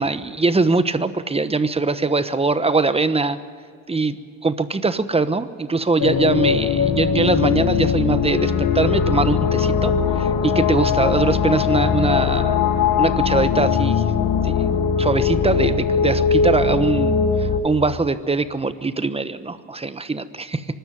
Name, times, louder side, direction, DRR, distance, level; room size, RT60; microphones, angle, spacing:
voice 1, 0.0-3.4 3.9-4.2 4.4-12.6 13.0-14.0 14.4-14.5 15.0-20.6, right 3 dB, 20° right, 13 dB, 1.2 m, -22 dB
sound 1, 6.0-17.6, left 6 dB, 90° left, 1.8 m, -20 dB
24.0 x 13.0 x 9.4 m, 2.1 s
cardioid pair, 90°, 30 cm